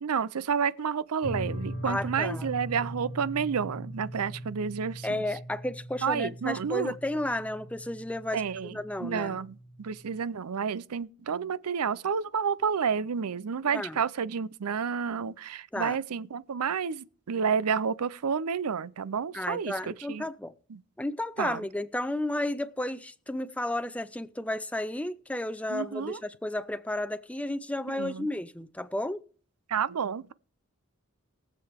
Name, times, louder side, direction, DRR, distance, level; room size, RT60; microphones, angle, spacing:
voice 1, 0.0-5.2 6.0-6.9 8.3-20.2 20.7-20.8 21.4-21.6 25.7-26.2 27.9-28.3 29.7-30.3, right 6 dB, 85° right, 0.5 m, -30 dB
sound 1, 1.2-10.2, equal, 75° left, 1.5 m, -40 dB
voice 2, 1.8-2.5 5.0-8.4 8.7-9.4 13.7-14.0 15.7-16.0 19.3-20.5 21.0-29.2, left 1 dB, 5° left, 0.5 m, -32 dB
22.0 x 7.6 x 3.5 m
head